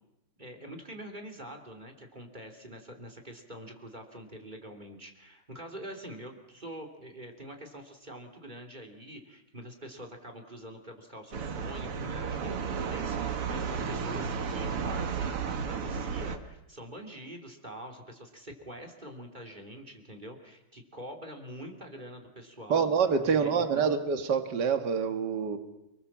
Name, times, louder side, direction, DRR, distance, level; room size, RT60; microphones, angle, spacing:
voice 1, 0.4-22.9 23.2-24.0, right 1 dB, 20° right, 3 dB, 3.2 m, -45 dB
sound 1, 11.3-16.4, right 6 dB, 85° right, 2.6 m, -33 dB
voice 2, 22.7-25.6, right 6 dB, 50° right, 8 dB, 2.3 m, -26 dB
29.0 x 21.0 x 7.5 m, 0.92 s
omnidirectional pair, 2.4 m